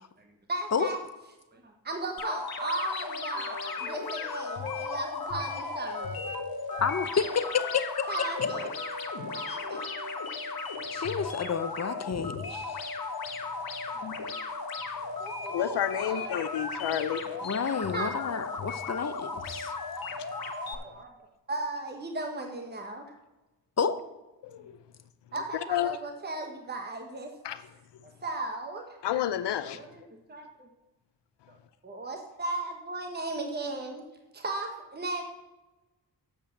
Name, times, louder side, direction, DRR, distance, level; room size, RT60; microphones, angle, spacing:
voice 1, 0.2-1.0 1.5-6.2 8.1-8.7 9.3-9.9 14.0-14.1 15.2-16.4 17.9-18.1 20.7-21.1 21.5-23.1 24.6-24.7 25.3-27.3 28.2-29.0 29.7-30.0 30.3-30.7 31.5-31.6 31.8-34.0 34.3-35.2, right 2 dB, 25° right, 3 dB, 1.2 m, -36 dB
sound 1, 2.2-20.7, left 4 dB, 60° left, 1.3 m, -36 dB
Wind instrument woodwind instrument, 3.3-10.1, left 2 dB, 20° left, 1.6 m, -43 dB
voice 2, 6.8-8.1 8.4-8.5 10.9-12.9 17.4-19.7 23.8-24.0, left 6 dB, 40° left, 12 dB, 0.7 m, -30 dB
voice 3, 15.5-17.4 24.4-24.7 25.7-26.0 27.4-27.6 29.0-29.8, left 10 dB, 80° left, 13 dB, 0.6 m, -30 dB
7.3 x 5.5 x 6.9 m, 1.1 s
cardioid pair, 55°, 41 cm